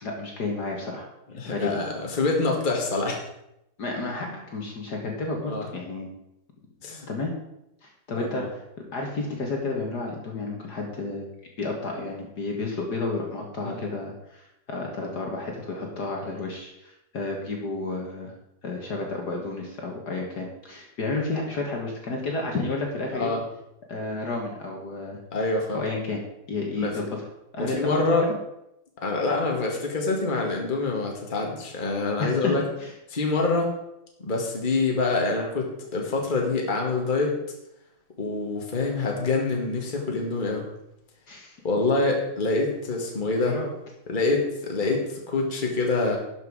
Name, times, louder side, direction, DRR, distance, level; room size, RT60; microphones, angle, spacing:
voice 1, 0.0-1.7 3.8-6.1 7.1-7.3 7.8-8.6 8.9-11.3 11.6-18.3 18.6-23.3 23.9-25.2 25.7-26.2 26.5-27.3 27.5-28.2 32.2-32.5 32.8-32.9 41.3-41.6 43.4-43.7, left 3 dB, 50° left, 0 dB, 2.0 m, -31 dB
voice 2, 1.4-3.2 5.5-5.7 6.8-7.1 8.3-8.5 13.6-13.7 23.1-23.4 25.3-25.8 26.7-27.0 27.6-28.2 29.0-32.6 33.1-33.7 34.2-37.3 38.2-40.7 41.6-43.5 44.1-46.2, left 3 dB, 25° left, 0 dB, 1.8 m, -26 dB
11.5 x 6.8 x 4.8 m, 0.84 s
omnidirectional pair, 2.3 m